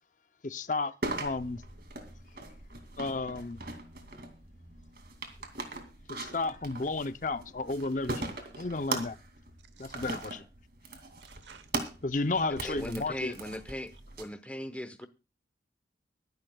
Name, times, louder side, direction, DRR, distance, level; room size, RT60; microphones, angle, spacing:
voice 1, 0.4-0.9 1.2-1.6 3.0-3.6 6.1-9.1 9.8-10.4 12.0-13.3, left 3 dB, 45° left, 0.7 m, -32 dB
sound 1, 1.0-14.2, right 2 dB, 60° right, 2.5 m, -40 dB
voice 2, 7.8-8.3 9.8-10.1 11.2-11.7, right 6 dB, 85° right, 1.2 m, -56 dB
voice 3, 12.5-13.9 14.2-15.1, left 1 dB, 10° left, 1.0 m, -38 dB
23.5 x 12.0 x 2.3 m
head